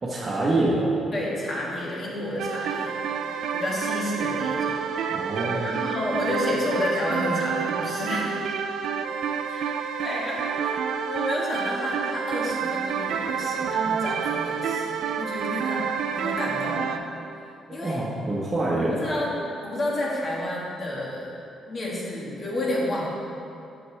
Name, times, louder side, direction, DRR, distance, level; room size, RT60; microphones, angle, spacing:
voice 1, 0.0-0.9 5.1-5.6 17.8-19.0, right 2 dB, 30° right, -7 dB, 0.9 m, -25 dB
voice 2, 1.1-5.0 5.4-8.4 9.4-10.7 11.1-17.0 17.7-18.0 18.8-19.3 19.6-21.3 21.7-23.1, left 1 dB, 40° left, -4 dB, 1.5 m, -30 dB
sound 1, 2.4-17.0, right 7 dB, 75° right, 0.3 m, -28 dB
6.6 x 5.9 x 3.3 m, 2.7 s
cardioid pair, 90°, 0 cm